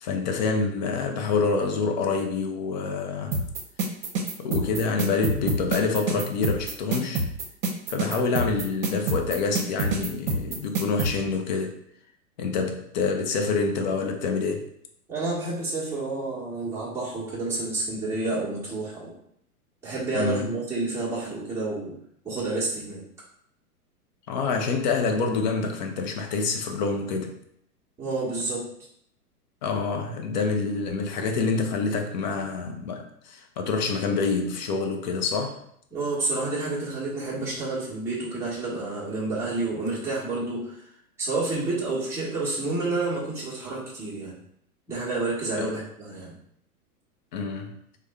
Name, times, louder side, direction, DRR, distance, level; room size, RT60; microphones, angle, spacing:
voice 1, 0.0-3.4 4.4-7.2 7.9-11.8 12.4-14.7 20.1-20.5 24.3-27.4 29.6-35.6 45.6-45.7 47.3-47.8, left 4 dB, 35° left, 3 dB, 0.4 m, -27 dB
sound 1, 3.3-11.1, right 2 dB, 55° right, 0.8 m, -27 dB
voice 2, 15.1-19.2 19.8-21.9 22.2-23.0 28.0-28.6 35.9-40.8 41.2-44.3 44.9-46.3, right 3 dB, 5° right, -8 dB, 1.0 m, -29 dB
3.5 x 2.2 x 3.4 m, 0.70 s
hypercardioid pair, 120°, 46 cm